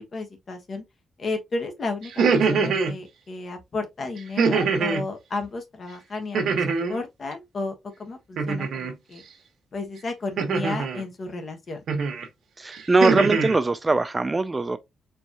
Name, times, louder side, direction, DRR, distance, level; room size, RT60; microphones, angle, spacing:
voice 1, 0.1-0.8 1.2-9.2 9.7-11.8, left 3 dB, 40° left, 1.2 m, -33 dB
sound 1, 2.0-2.9 4.4-5.1 6.3-7.0 8.4-8.9 10.4-11.0 11.9-12.2 12.7-13.6, right 5 dB, 75° right, 1.2 m, -23 dB
voice 2, 12.6-14.8, right 3 dB, 20° right, 0.3 m, -21 dB
4.6 x 3.1 x 2.8 m
wide cardioid pair, 150°, 0 cm